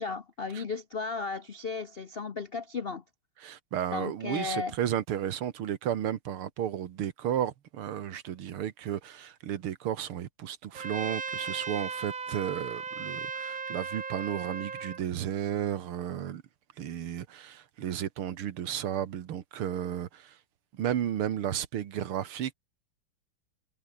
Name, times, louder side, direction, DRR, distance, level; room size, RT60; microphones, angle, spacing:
voice 1, 0.0-3.0 3.9-4.7, left 4 dB, 65° left, 0.5 m, -35 dB
voice 2, 3.4-16.4 16.8-20.4 20.7-22.5, right 10 dB, 75° right, 2.2 m, -33 dB
Trumpet, 10.7-15.0, right 5 dB, 40° right, 0.7 m, -37 dB
omnidirectional pair, 2.4 m